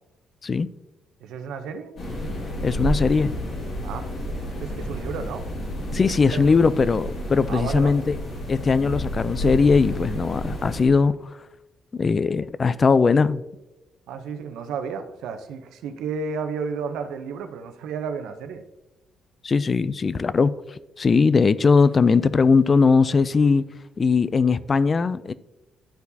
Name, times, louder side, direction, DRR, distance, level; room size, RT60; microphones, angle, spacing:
voice 1, 1.2-1.9 3.8-4.1 4.6-5.5 6.1-6.6 7.5-8.0 14.1-18.6, right 5 dB, 90° right, 0.6 m, -32 dB
sound 1, 2.0-10.9, equal, 60° left, 2.2 m, -31 dB
voice 2, 2.6-3.3 5.9-8.1 8.5-11.2 11.9-13.4 19.4-20.5 21.0-23.6 24.0-25.3, left 4 dB, 35° left, 0.3 m, -19 dB
11.5 x 4.5 x 2.7 m
cardioid pair, 90°, 0 cm